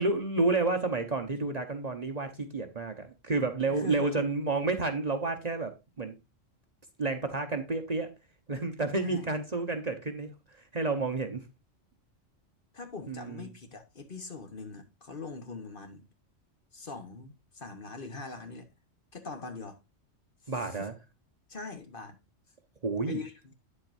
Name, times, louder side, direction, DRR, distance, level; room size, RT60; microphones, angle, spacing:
voice 1, 0.0-6.1 7.0-8.1 8.5-10.3 10.7-11.4 13.1-13.5 20.5-20.9 22.8-23.2, right 3 dB, 35° right, 1.0 m, -30 dB
voice 2, 3.7-4.2 9.0-9.3 12.7-16.1 16.7-18.7 19.1-19.8 20.4-20.9 21.5-22.2 23.1-23.5, left 4 dB, 45° left, 1.3 m, -42 dB
9.1 x 7.6 x 2.5 m
omnidirectional pair, 1.3 m